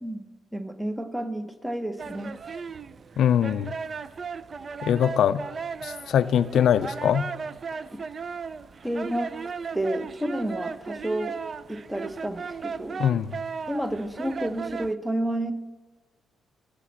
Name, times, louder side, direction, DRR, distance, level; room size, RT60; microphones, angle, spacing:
voice 1, 0.5-2.3 7.9-8.0 8.8-9.3 9.7-11.4 11.7-13.0 13.7-15.5, right 1 dB, 5° right, 11 dB, 0.8 m, -30 dB
sound 1, 2.0-14.9, right 5 dB, 40° right, 0.4 m, -36 dB
voice 2, 3.2-3.7 4.8-5.4 5.8-7.3 13.0-13.4, left 9 dB, 65° left, 14 dB, 0.4 m, -22 dB
13.0 x 5.2 x 7.3 m, 1.2 s
cardioid pair, 90°, 0 cm